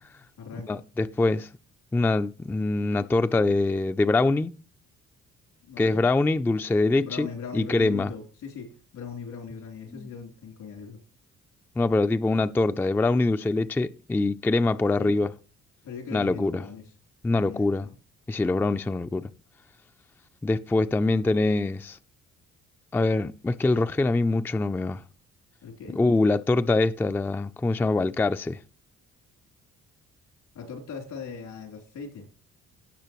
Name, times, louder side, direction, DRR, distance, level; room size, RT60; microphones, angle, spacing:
voice 1, 0.1-0.8 5.6-6.0 7.0-11.0 15.0-15.2 15.8-16.8 17.3-17.9 25.6-26.0 30.5-32.3, left 6 dB, 85° left, 3.4 m, -39 dB
voice 2, 0.7-1.5 1.9-4.5 5.8-7.3 7.5-8.1 9.9-10.1 11.8-15.3 16.1-16.6 17.2-17.9 18.3-19.3 20.4-22.0 22.9-25.0 25.9-28.6, left 2 dB, 5° left, 0.4 m, -24 dB
17.0 x 6.3 x 3.0 m
cardioid pair, 90°, 30 cm